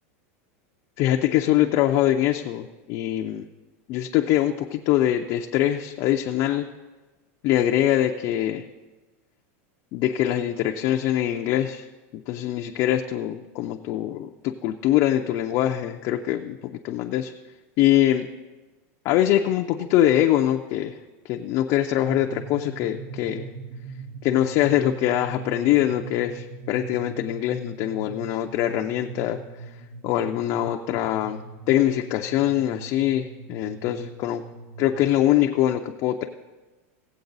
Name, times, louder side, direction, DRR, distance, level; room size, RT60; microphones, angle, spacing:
voice 1, 1.0-3.4 3.9-6.7 7.4-8.6 9.9-11.9 12.3-17.3 17.8-18.3 19.0-21.0 21.2-23.5 24.2-29.4 30.0-31.4 31.7-34.4 34.8-36.3, left 12 dB, 40° left, 2 dB, 0.5 m, -23 dB
sound 1, 22.0-35.0, right 5 dB, 80° right, 1.0 m, -41 dB
17.0 x 7.8 x 4.0 m, 1.2 s
supercardioid pair, 165°, 8 cm